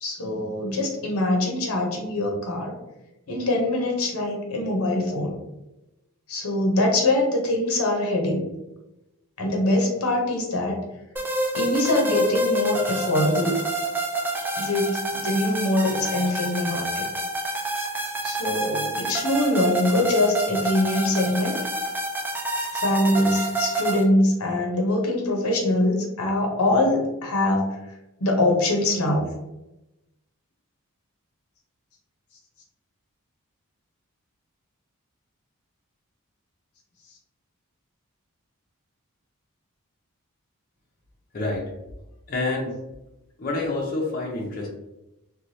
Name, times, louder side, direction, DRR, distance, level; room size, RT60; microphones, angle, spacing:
voice 1, 0.0-2.7 3.3-5.3 6.3-8.5 9.4-10.8 11.5-13.6 14.6-17.1 18.2-21.6 22.7-27.8 28.2-29.3, left 1 dB, 80° left, 1 dB, 0.7 m, -23 dB
sound 1, 11.2-24.0, right 1 dB, 10° right, 0.3 m, -28 dB
voice 2, 41.3-41.7 42.3-42.7 43.4-44.7, left 2 dB, 40° left, -3 dB, 0.6 m, -27 dB
3.1 x 2.2 x 2.7 m, 0.95 s
head